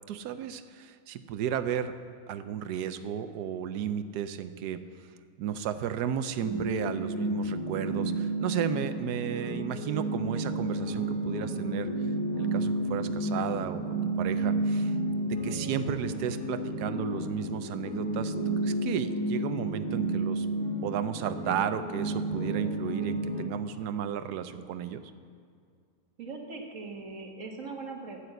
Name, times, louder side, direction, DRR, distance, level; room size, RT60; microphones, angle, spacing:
voice 1, 0.1-1.9 2.3-4.9 5.4-11.9 12.4-14.9 15.2-18.3 18.6-20.5 20.8-25.0, right 9 dB, 85° right, 11 dB, 1.2 m, -33 dB
sound 1, 6.4-23.5, right 1 dB, 50° left, 2.0 m, -31 dB
voice 2, 26.2-28.2, right 3 dB, 55° right, 2 dB, 1.6 m, -40 dB
9.3 x 8.7 x 7.9 m, 2.3 s
omnidirectional pair, 1.7 m